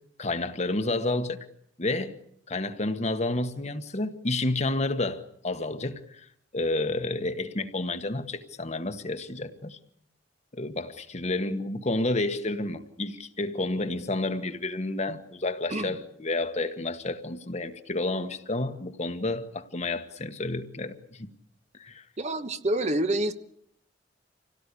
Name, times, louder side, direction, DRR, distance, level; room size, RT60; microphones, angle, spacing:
voice 1, 0.2-1.5 1.8-2.1 2.5-6.2 6.5-9.8 10.5-21.3 21.8-22.0, left 2 dB, 40° left, 1.4 m, -30 dB
voice 2, 22.2-23.3, right 1 dB, 40° right, 1.3 m, -27 dB
26.5 x 17.5 x 8.4 m
head